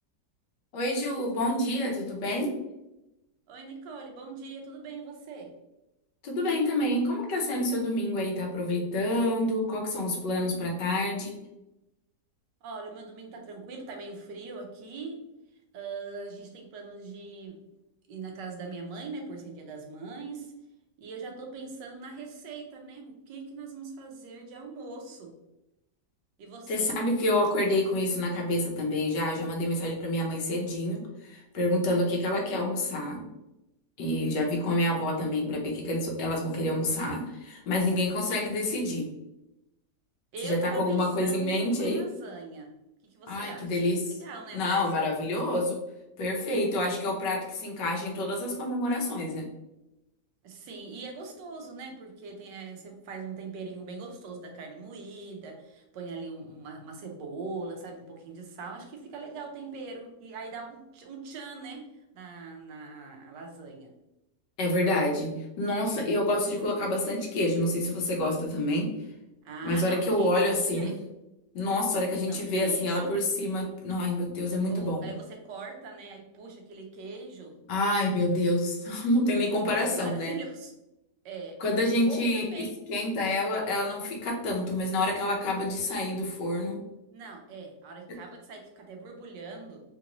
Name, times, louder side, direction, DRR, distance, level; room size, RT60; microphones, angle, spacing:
voice 1, 0.7-2.5 6.2-11.3 26.7-33.2 34.0-39.0 40.4-42.0 43.3-44.2 44.5-45.8 46.2-49.5 64.6-68.9 69.6-70.9 71.5-75.1 77.7-80.3 81.6-86.8, left 1 dB, 80° left, 0 dB, 1.5 m, -28 dB
voice 2, 3.5-5.5 12.6-15.2 15.7-17.6 18.1-20.5 21.0-25.4 26.4-27.0 40.3-42.7 43.1-45.3 50.4-61.9 62.1-63.9 69.4-70.9 72.3-73.1 74.7-77.5 79.6-80.7 81.2-81.6 82.1-82.8 87.1-89.8, right 4 dB, 85° right, 2 dB, 1.4 m, -41 dB
3.8 x 2.6 x 2.9 m, 0.93 s
omnidirectional pair, 1.9 m